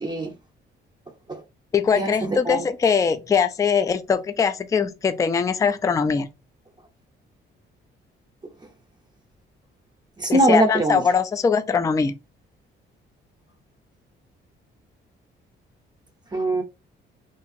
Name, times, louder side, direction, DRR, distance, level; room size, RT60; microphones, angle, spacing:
voice 1, 0.0-0.3 1.3-1.4 1.9-2.6 10.2-11.0 16.3-16.6, right 2 dB, 20° right, 0.7 m, -22 dB
voice 2, 1.7-6.3 10.3-12.2, left 6 dB, 15° left, 0.3 m, -21 dB
2.8 x 2.5 x 2.6 m
cardioid pair, 90°, 20 cm